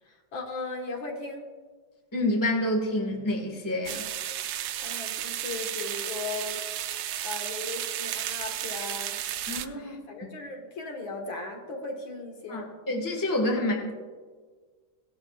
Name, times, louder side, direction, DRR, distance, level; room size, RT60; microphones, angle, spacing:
voice 1, 0.0-1.4 4.8-6.6 7.2-9.2 9.7-12.7, left 3 dB, 70° left, 1 dB, 2.3 m, -37 dB
voice 2, 2.1-4.0 9.5-9.9 12.5-13.9, left 1 dB, 10° left, 1 dB, 1.4 m, -28 dB
sound 1, 3.9-9.7, right 12 dB, 80° right, 1.3 m, -33 dB
17.5 x 12.0 x 2.4 m, 1.5 s
omnidirectional pair, 2.3 m